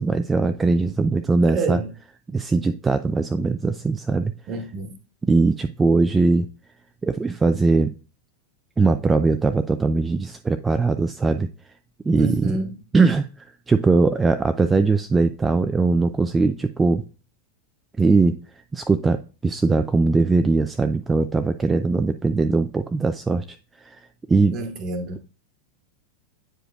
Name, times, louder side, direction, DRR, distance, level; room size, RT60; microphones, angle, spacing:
voice 1, 0.0-1.8 2.3-4.3 5.3-6.5 7.0-7.9 8.8-11.5 12.0-12.6 12.9-17.0 18.0-18.4 18.7-23.4 23.8-24.0 24.3-24.6, right 3 dB, 15° right, 0.3 m, -20 dB
voice 2, 1.4-1.9 4.5-4.9 12.1-12.8 24.5-25.2, right 3 dB, 35° right, 1.2 m, -28 dB
8.7 x 4.9 x 2.3 m
figure-of-eight pair, 90°, 0 cm